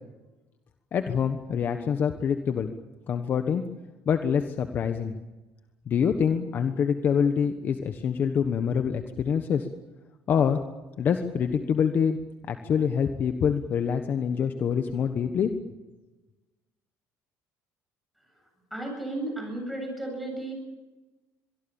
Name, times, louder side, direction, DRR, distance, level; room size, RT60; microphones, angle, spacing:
voice 1, 0.9-2.7 3.1-3.6 4.0-5.2 5.9-9.7 10.3-10.6 11.0-12.2 12.5-15.5, left 7 dB, 35° left, 7 dB, 1.3 m, -25 dB
voice 2, 18.7-20.5, right 2 dB, ahead, 2 dB, 7.9 m, -33 dB
24.0 x 23.0 x 7.2 m, 1.1 s
cardioid pair, 160°, 6 cm